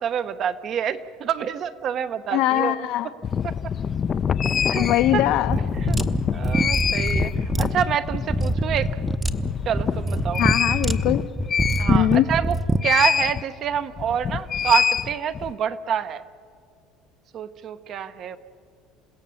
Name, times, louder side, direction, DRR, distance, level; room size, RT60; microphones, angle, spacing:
voice 1, 0.0-2.8 3.4-3.5 4.4-4.9 5.1-5.2 5.8-6.0 6.3-8.9 9.6-10.4 11.8-12.6 12.8-16.2 17.3-18.4, right 8 dB, 45° right, 11 dB, 1.0 m, -27 dB
voice 2, 2.3-3.1 4.7-5.6 10.4-11.3 11.9-12.3, left 14 dB, 65° left, 10 dB, 1.0 m, -21 dB
sound 1, 3.2-12.3 12.8-13.4 13.7-15.5, left 7 dB, 30° left, 0.6 m, -26 dB
sound 2, 5.5-12.9, right 2 dB, 10° right, 0.9 m, -25 dB
28.5 x 16.5 x 7.1 m, 2.3 s
cardioid pair, 130°, 0 cm